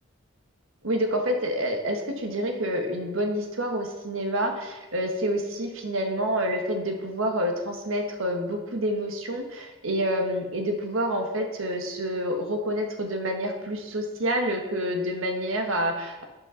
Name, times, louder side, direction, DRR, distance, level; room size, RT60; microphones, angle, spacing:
voice 1, 0.8-16.2, equal, 80° right, 3 dB, 1.3 m, -28 dB
8.9 x 5.4 x 5.6 m, 1.1 s
head